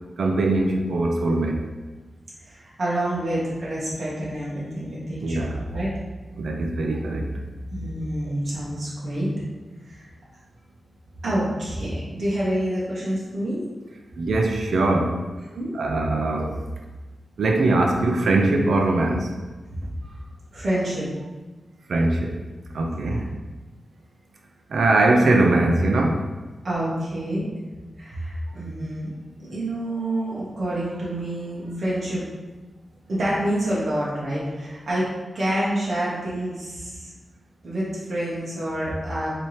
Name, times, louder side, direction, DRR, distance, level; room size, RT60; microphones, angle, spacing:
voice 1, 0.2-1.6 5.2-5.6 6.4-7.3 14.2-15.2 15.7-16.5 17.4-19.3 21.9-22.3 22.7-23.2 24.7-26.2, right 2 dB, 80° right, 1 dB, 0.6 m, -21 dB
voice 2, 2.4-5.5 5.7-5.9 7.7-9.3 9.9-10.0 11.2-13.6 15.5-15.7 20.0-20.1 20.5-21.1 23.0-23.2 26.6-27.5 28.0-29.1 29.4-32.2 33.1-37.1 37.6-39.4, right 1 dB, 55° right, -8 dB, 1.2 m, -27 dB
4.4 x 2.9 x 3.1 m, 1.2 s
wide cardioid pair, 150°, 0 cm